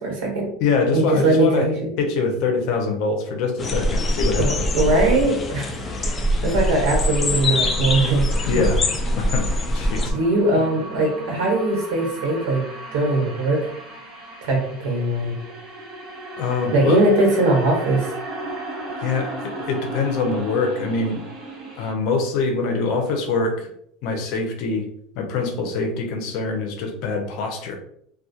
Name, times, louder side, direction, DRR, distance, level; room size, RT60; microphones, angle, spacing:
voice 1, 0.0-0.5 0.9-1.9 4.4-8.5 10.1-12.6 12.9-13.6 14.4-15.3 16.7-18.1, right 2 dB, 80° right, 0 dB, 1.0 m, -21 dB
voice 2, 0.6-1.7 2.0-4.5 8.5-8.8 9.2-9.4 9.7-10.1 10.5-10.6 16.4-17.0 19.0-21.2 21.8-23.7 24.0-24.9 25.1-27.8, left 4 dB, 60° left, 4 dB, 0.6 m, -24 dB
sound 1, 3.6-10.1, left 1 dB, 20° left, 0.3 m, -23 dB
sound 2, 5.8-21.9, right 2 dB, 45° right, 0.8 m, -36 dB
2.3 x 2.2 x 2.7 m, 0.67 s
supercardioid pair, 145°, 0 cm